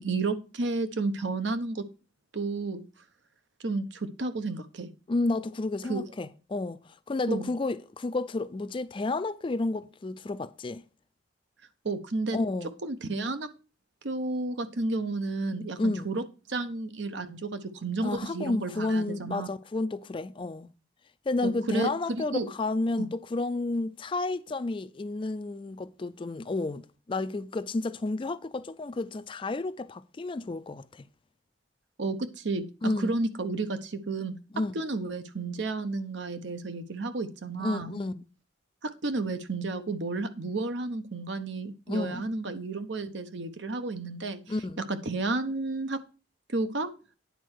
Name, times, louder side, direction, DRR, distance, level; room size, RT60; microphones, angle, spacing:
voice 1, 0.0-1.8 2.3-2.9 3.6-4.9 5.9-6.0 7.3-7.5 11.8-12.4 12.8-13.5 14.0-16.2 16.5-19.5 21.4-22.5 23.0-23.1 32.0-34.3 34.7-38.0 38.8-44.4 44.9-46.0 46.5-46.9, right 3 dB, 70° right, 0.8 m, -32 dB
voice 2, 5.1-6.8 7.1-10.8 12.3-12.7 15.8-16.1 18.0-20.7 21.3-31.1 32.8-33.1 34.5-34.8 37.6-38.3 41.9-42.2 44.5-44.8, left 2 dB, 25° left, 0.3 m, -31 dB
9.3 x 4.4 x 6.3 m
head